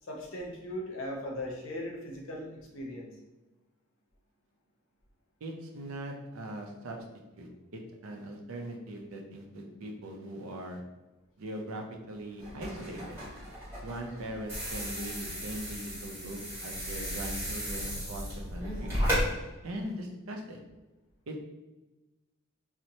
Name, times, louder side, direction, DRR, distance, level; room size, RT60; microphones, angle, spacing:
voice 1, 0.0-3.2, left 1 dB, 65° left, -1 dB, 0.6 m, -38 dB
voice 2, 5.4-7.0 7.4-7.5 8.0-10.8 11.4-13.2 13.8-18.9 19.6-20.6 21.3-21.4, right 1 dB, 75° right, 3 dB, 0.5 m, -40 dB
sound 1, 12.4-19.2, equal, 10° right, 1.5 m, -35 dB
2.9 x 2.0 x 2.7 m, 1.1 s
head